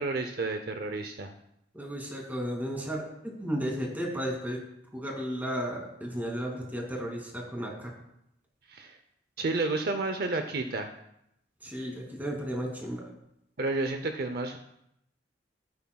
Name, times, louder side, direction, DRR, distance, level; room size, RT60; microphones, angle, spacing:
voice 1, 0.0-1.3 8.7-9.0 9.4-10.9 13.6-14.6, right 3 dB, 60° right, 6 dB, 0.7 m, -31 dB
voice 2, 1.7-4.6 4.9-7.9 11.6-13.0, equal, 10° right, -1 dB, 2.6 m, -34 dB
14.0 x 9.3 x 2.3 m, 0.79 s
head